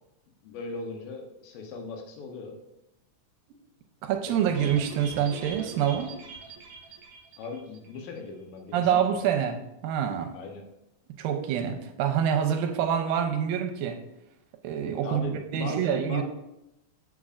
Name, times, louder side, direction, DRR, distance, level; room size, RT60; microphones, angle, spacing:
voice 1, 0.4-2.6 4.3-4.5 7.4-9.3 10.3-10.6 15.0-16.2, left 4 dB, 80° left, 3 dB, 2.6 m, -39 dB
voice 2, 4.0-6.1 8.7-10.3 11.2-14.0 14.6-16.2, right 8 dB, 85° right, 6 dB, 2.4 m, -26 dB
sound 1, 4.5-8.0 8.3-8.4 8.7-8.8, right 5 dB, 65° right, 2.1 m, -43 dB
7.6 x 7.4 x 2.5 m, 0.87 s
omnidirectional pair, 4.0 m